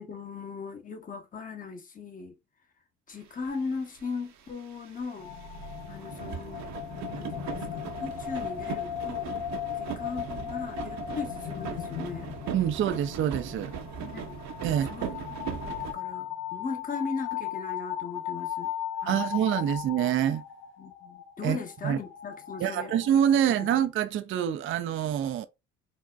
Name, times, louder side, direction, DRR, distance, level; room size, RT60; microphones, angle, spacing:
voice 1, 0.0-2.4 3.1-5.3 5.9-6.7 7.1-12.3 14.0-14.5 14.8-18.7 19.0-19.3 20.8-22.9 23.5-23.7, left 4 dB, 25° left, 0.8 m, -38 dB
sound 1, 3.5-3.6 3.7-4.0 4.5-15.9, right 7 dB, 60° right, 0.7 m, -39 dB
sound 2, 5.2-23.9, left 11 dB, 75° left, 0.8 m, -37 dB
voice 2, 12.5-13.7 14.6-14.9 19.1-20.4 21.4-21.6 21.8-22.0 22.6-25.5, right 10 dB, 40° right, 0.4 m, -26 dB
3.9 x 2.1 x 2.3 m
supercardioid pair, 70°, 31 cm